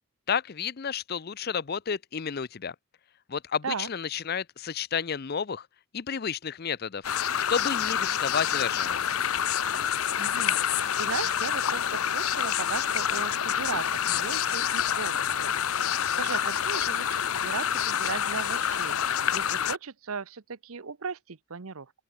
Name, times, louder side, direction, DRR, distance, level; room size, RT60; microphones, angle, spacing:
voice 1, 0.3-2.7 3.3-5.7 5.9-7.0 7.5-9.0, left 6 dB, 45° left, 0.5 m, -31 dB
sound 1, 7.0-19.8, left 9 dB, 75° left, 0.8 m, -27 dB
voice 2, 10.2-21.9, right 5 dB, 75° right, 0.8 m, -37 dB
open air
head